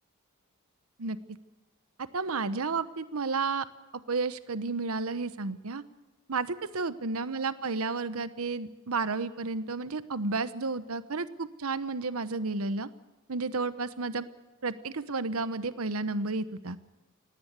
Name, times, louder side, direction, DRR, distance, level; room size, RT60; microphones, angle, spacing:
voice 1, 2.0-3.7 4.1-5.8 6.3-12.9 13.3-14.3 14.6-16.8, right 3 dB, 75° right, 14 dB, 0.9 m, -32 dB
19.0 x 17.5 x 8.1 m, 1.1 s
head